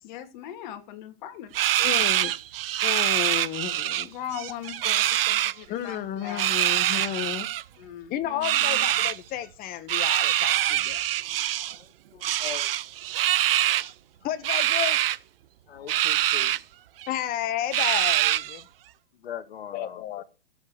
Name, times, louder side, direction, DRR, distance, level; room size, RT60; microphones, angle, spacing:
voice 1, 0.0-1.5 4.0-6.6 7.8-8.6, left 10 dB, 50° left, 2.9 m, -39 dB
sound 1, 1.5-4.0 4.3-5.5 6.3-7.6 8.4-9.2 9.9-11.8 12.2-13.9 14.4-15.2 15.9-16.6 17.0-17.1 17.7-18.6, right 13 dB, 70° right, 0.8 m, -24 dB
voice 2, 1.8-2.3 2.8-4.1 5.7-7.5 8.1-11.0 14.2-15.0 17.1-18.7 19.7-20.2, left 11 dB, 30° left, 1.6 m, -32 dB
voice 3, 12.1-12.7 15.7-16.6 19.2-20.0, left 9 dB, 80° left, 1.9 m, -40 dB
15.0 x 8.2 x 6.8 m
hypercardioid pair, 135°, 30 cm